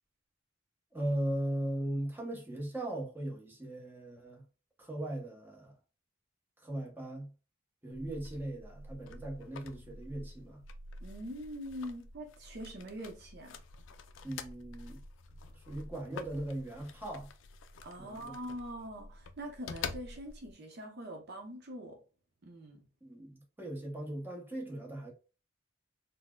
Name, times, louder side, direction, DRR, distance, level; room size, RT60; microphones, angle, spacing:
voice 1, 0.9-4.4 4.8-5.7 6.6-7.3 7.8-10.6 14.2-15.0 15.5-17.3 18.0-18.3 23.0-25.1, right 1 dB, 10° right, 0.8 m, -38 dB
sound 1, 7.9-20.5, left 4 dB, 70° left, 0.4 m, -48 dB
voice 2, 11.0-13.6 17.8-22.0 22.4-22.8, equal, 60° right, 0.7 m, -43 dB
4.0 x 2.1 x 2.2 m
head